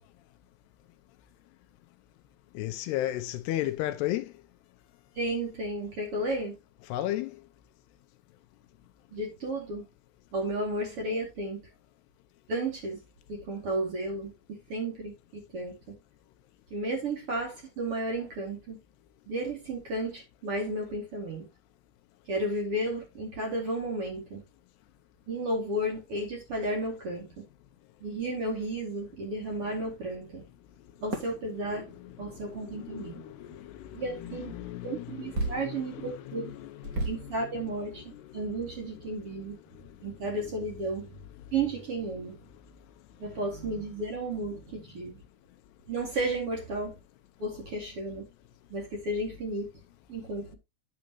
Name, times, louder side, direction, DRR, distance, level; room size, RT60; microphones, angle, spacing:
voice 1, 2.6-4.3 6.9-7.3 32.7-33.9 34.1-37.3, left 14 dB, 80° left, 2.7 m, -34 dB
voice 2, 5.1-6.6 9.1-9.9 10.3-11.6 12.5-13.0 13.3-16.0 16.7-18.8 19.3-21.4 22.3-24.4 25.3-27.4 28.0-30.4 31.0-31.8 32.2-33.2 33.9-34.6 34.8-36.6 37.0-39.6 40.0-41.2 41.5-42.4 43.2-45.2 45.9-46.9 47.4-48.2 48.7-49.7 50.1-50.6, right 2 dB, 40° right, 2.7 m, -33 dB
sound 1, 31.1-31.4 32.6-32.7 33.9-34.1 35.3-35.8 36.2-36.3 36.8-37.4 38.0-38.1 38.4-38.5 38.8-39.1, right 2 dB, 60° right, 0.9 m, -33 dB
9.4 x 7.4 x 3.0 m
omnidirectional pair, 4.9 m